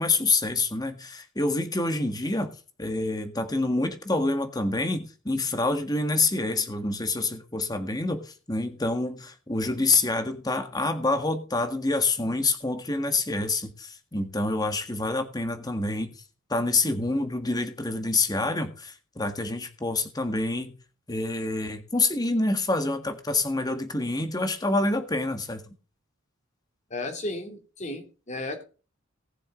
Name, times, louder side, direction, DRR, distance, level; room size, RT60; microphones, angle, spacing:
voice 1, 0.0-2.5 2.8-16.2 16.5-20.7 21.1-25.7, left 2 dB, 20° left, 1.7 m, -27 dB
voice 2, 26.9-28.6, left 2 dB, 35° left, 2.8 m, -34 dB
19.0 x 7.0 x 3.8 m
head